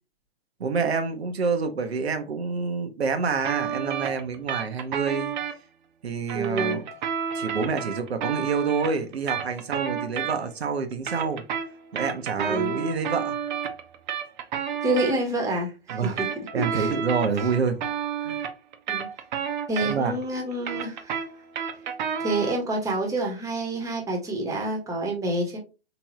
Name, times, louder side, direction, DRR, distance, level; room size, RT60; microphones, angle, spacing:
voice 1, 0.6-5.4 6.0-6.8 7.3-11.4 11.9-13.4 15.9-16.2 16.5-17.8 18.2-18.4 19.8-20.2, right 5 dB, 85° right, 0.8 m, -27 dB
sound 1, 3.4-5.5 6.3-10.6 10.9-15.1 15.9-20.2 20.5-22.6, right 8 dB, 50° right, 0.7 m, -30 dB
voice 2, 6.3-6.8 12.4-12.8 14.8-16.9 18.9-19.1 19.7-21.2 22.2-25.6, right 2 dB, 10° right, 1.0 m, -28 dB
3.5 x 3.0 x 2.9 m
hypercardioid pair, 125°, 31 cm